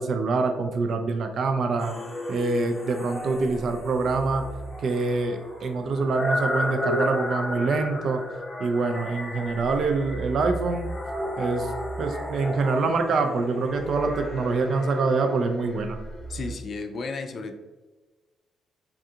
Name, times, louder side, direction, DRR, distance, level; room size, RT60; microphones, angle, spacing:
voice 1, 0.0-1.9 2.3-4.5 4.8-8.2 8.6-10.9 11.4-11.7 12.0-16.0, right 3 dB, 60° right, 6 dB, 0.3 m, -25 dB
sound 1, 1.8-16.5, equal, 20° left, 0.9 m, -33 dB
voice 2, 16.3-17.6, left 4 dB, 50° left, 5 dB, 0.4 m, -33 dB
3.6 x 2.3 x 2.7 m, 1.2 s
cardioid pair, 90°, 0 cm